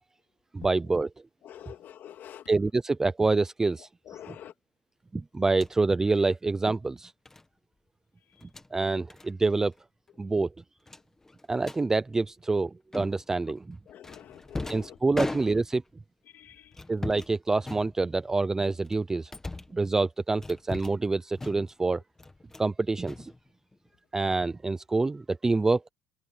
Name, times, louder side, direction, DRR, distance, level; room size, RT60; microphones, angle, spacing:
voice 1, 0.5-1.1 2.5-3.9 4.3-4.4 5.1-7.1 8.7-9.7 10.2-10.5 11.5-13.8 14.7-15.8 16.9-19.3 19.7-22.0 22.6-23.3 24.1-25.8, right 3 dB, 10° right, 0.5 m, -26 dB
voice 2, 1.4-2.5 4.1-4.5 13.9-15.3 16.3-16.8, left 10 dB, 40° left, 2.5 m, -46 dB
sound 1, 5.5-5.8 7.3-7.5 8.3-8.7 9.1-9.3 9.6-9.8 10.1-10.2 10.9-11.8 12.9-13.4 14.0-15.9 16.7-17.3 17.6-18.3 18.8-19.8 20.4-21.1 21.4-21.8 22.2-22.7 23.0-23.9, left 2 dB, 10° left, 1.7 m, -39 dB
cardioid pair, 160°, 5 cm